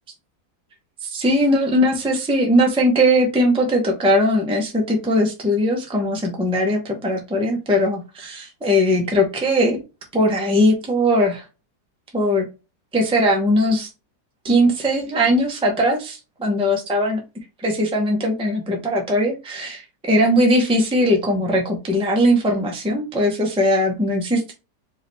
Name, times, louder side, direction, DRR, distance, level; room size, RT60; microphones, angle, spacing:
voice 1, 1.0-9.8 10.1-11.4 12.1-12.5 12.9-13.9 14.4-17.2 17.6-24.5, equal, 5° right, 0 dB, 0.9 m, -19 dB
4.8 x 2.8 x 3.3 m, 0.28 s
omnidirectional pair, 1.8 m